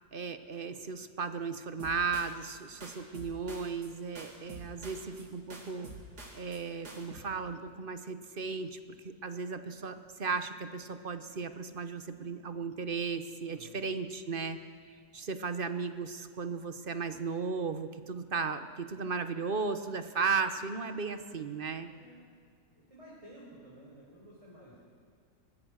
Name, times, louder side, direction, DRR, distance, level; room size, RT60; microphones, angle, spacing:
voice 1, 0.1-5.9 6.3-8.8 9.0-14.6 15.1-21.9, right 5 dB, 40° right, 10 dB, 1.1 m, -35 dB
sound 1, 1.8-2.6 2.8-5.2 5.5-6.6 6.8-7.2, right 1 dB, 85° right, 3.5 m, -47 dB
voice 2, 13.4-13.8 21.9-22.3 22.7-24.8, equal, 20° right, -6 dB, 4.5 m, -53 dB
23.5 x 20.0 x 6.5 m, 2.1 s
omnidirectional pair, 1.7 m